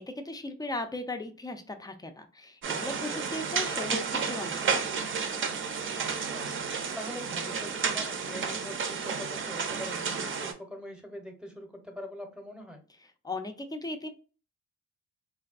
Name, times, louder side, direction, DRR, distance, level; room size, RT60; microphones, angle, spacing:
voice 1, 0.0-4.8 13.2-14.1, left 2 dB, 15° left, 7 dB, 0.4 m, -37 dB
sound 1, 2.6-10.5, right 5 dB, 40° right, 0.6 m, -32 dB
voice 2, 3.1-3.5 6.0-6.5 6.9-12.8, left 1 dB, 5° right, 3 dB, 0.8 m, -43 dB
3.3 x 2.2 x 2.4 m, 0.36 s
cardioid pair, 90°, 30 cm